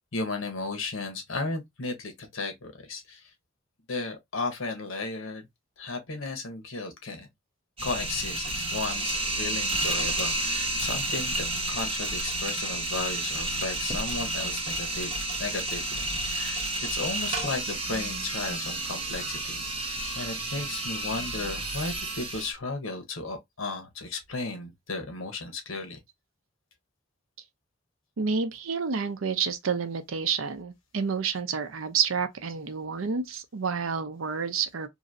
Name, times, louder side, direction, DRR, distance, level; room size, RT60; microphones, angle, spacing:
voice 1, 0.1-3.2 3.9-5.5 5.8-7.3 7.8-15.1 15.4-26.0, left 3 dB, 85° left, 1.0 m, -35 dB
sound 1, 7.8-22.5, right 2 dB, 30° right, 1.0 m, -31 dB
voice 2, 28.2-34.9, right 6 dB, 85° right, 0.6 m, -29 dB
3.0 x 2.6 x 2.5 m
head